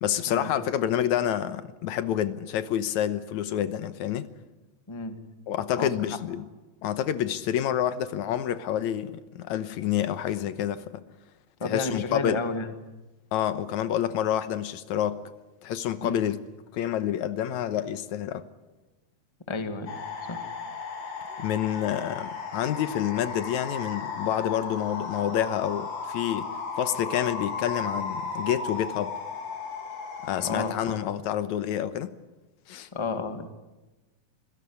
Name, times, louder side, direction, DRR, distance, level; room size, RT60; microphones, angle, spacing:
voice 1, 0.0-4.3 5.5-6.4 6.8-11.0 11.6-12.4 13.3-15.2 15.6-16.4 16.7-18.4 21.4-26.5 26.8-29.1 30.2-32.1 32.7-32.9, left 10 dB, 80° left, 2.3 m, -28 dB
voice 2, 11.6-12.7 16.0-16.2 19.5-19.9 20.3-20.4 30.4-31.0 32.9-33.5, left 3 dB, 15° left, 1.3 m, -31 dB
sound 1, 19.9-30.9, left 4 dB, 55° left, 3.8 m, -35 dB
26.5 x 16.5 x 10.0 m
omnidirectional pair, 3.4 m